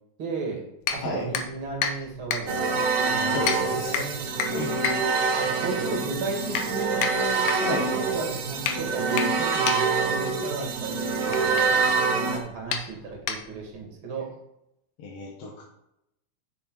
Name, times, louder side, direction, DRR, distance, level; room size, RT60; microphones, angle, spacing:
voice 1, 0.2-4.2 4.5-12.0 12.3-14.3, right 3 dB, 45° right, 1 dB, 2.5 m, -35 dB
sound 1, 0.8-13.8, left 7 dB, 75° left, 2.0 m, -33 dB
sound 2, 2.5-12.4, right 4 dB, 70° right, 1.0 m, -26 dB
voice 2, 3.3-3.9 4.5-4.7 7.6-7.9 15.0-15.6, left 2 dB, 60° left, -2 dB, 2.0 m, -32 dB
7.0 x 6.2 x 4.6 m, 0.82 s
omnidirectional pair, 3.4 m